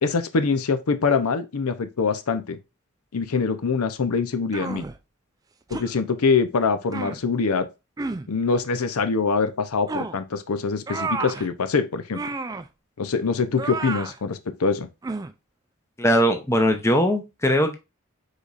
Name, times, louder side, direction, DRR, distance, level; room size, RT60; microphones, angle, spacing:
voice 1, 0.0-2.6 3.1-4.8 5.7-7.7 8.3-12.2 13.0-14.9, left 4 dB, 90° left, 0.6 m, -24 dB
sound 1, 4.5-5.0 5.7-5.9 6.9-7.2 8.0-8.3 9.9-10.2 10.9-11.5 12.1-12.7 13.6-14.2 15.0-15.3, right 3 dB, 15° right, 0.3 m, -31 dB
voice 2, 16.0-17.8, equal, 15° left, 0.7 m, -20 dB
5.1 x 4.1 x 2.5 m
head